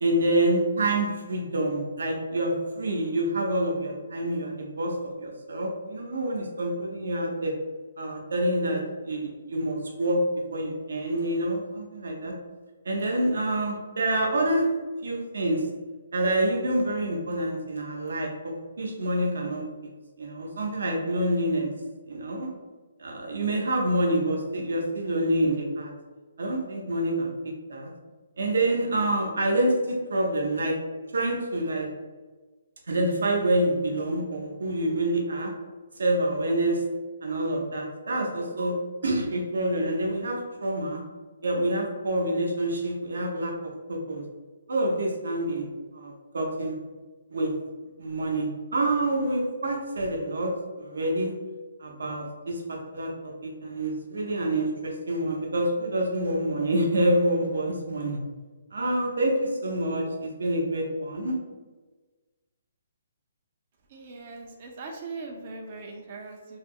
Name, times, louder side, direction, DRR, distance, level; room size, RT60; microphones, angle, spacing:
voice 1, 0.0-7.5 8.0-10.2 10.5-12.4 12.8-14.7 15.0-15.7 16.1-19.6 20.2-21.7 22.1-22.5 23.0-25.9 26.4-27.9 28.4-30.8 31.1-31.9 32.9-35.5 36.0-36.9 37.2-38.8 39.0-41.0 41.4-43.6 43.9-44.2 44.7-45.7 45.9-46.8 47.3-47.5 48.0-50.5 50.8-51.4 51.8-58.2 58.7-61.4, right 1 dB, 80° right, 0 dB, 0.6 m, -27 dB
voice 2, 63.9-66.6, right 3 dB, 35° right, 1 dB, 0.4 m, -40 dB
2.3 x 2.0 x 3.5 m, 1.3 s
hypercardioid pair, 165°, 0 cm